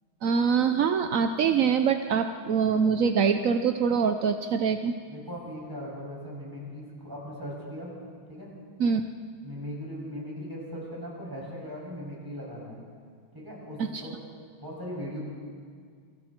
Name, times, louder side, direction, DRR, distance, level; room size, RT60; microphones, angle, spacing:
voice 1, 0.2-4.9 8.8-9.0 13.8-14.0, right 6 dB, 60° right, 7 dB, 0.8 m, -24 dB
voice 2, 5.1-7.9 8.3-8.5 9.4-12.8 13.3-14.1 14.6-15.2, equal, 10° right, -4 dB, 6.9 m, -39 dB
28.5 x 24.0 x 4.5 m, 2.1 s
omnidirectional pair, 2.2 m